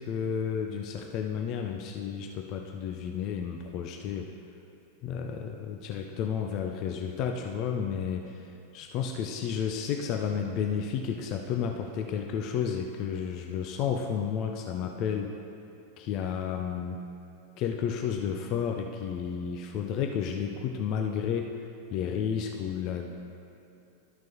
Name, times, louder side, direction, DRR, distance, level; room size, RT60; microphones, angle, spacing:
voice 1, 0.0-4.3 5.0-15.3 16.0-17.0 17.6-21.6 21.9-23.1, left 7 dB, 40° left, 3 dB, 0.4 m, -32 dB
13.0 x 6.0 x 2.8 m, 2.7 s
figure-of-eight pair, 90°, 0 cm